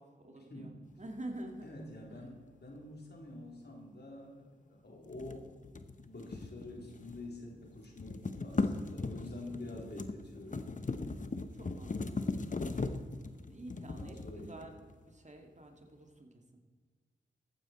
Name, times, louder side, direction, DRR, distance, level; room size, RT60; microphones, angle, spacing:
voice 1, 0.0-0.7 1.0-1.7 11.5-12.3 13.5-14.8 15.1-16.3, right 1 dB, 35° right, 3 dB, 2.0 m, -47 dB
voice 2, 1.6-5.5 6.0-10.6 13.7-14.6, left 1 dB, 55° left, -1 dB, 3.3 m, -47 dB
sound 1, 5.1-7.4 7.6-14.9, left 3 dB, 40° left, 0.9 m, -38 dB
14.5 x 9.1 x 4.3 m, 1.5 s
cardioid pair, 40°, 20 cm